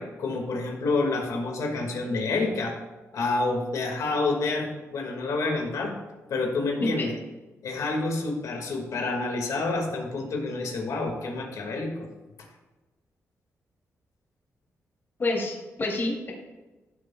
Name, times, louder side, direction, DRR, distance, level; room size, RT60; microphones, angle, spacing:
voice 1, 0.0-2.8 3.1-5.9 6.3-7.1 7.6-12.1, left 3 dB, 80° left, 1 dB, 2.3 m, -28 dB
voice 2, 15.2-16.3, left 2 dB, 40° left, -2 dB, 3.2 m, -28 dB
15.0 x 7.8 x 2.4 m, 1.2 s
cardioid pair, 105°, 6 cm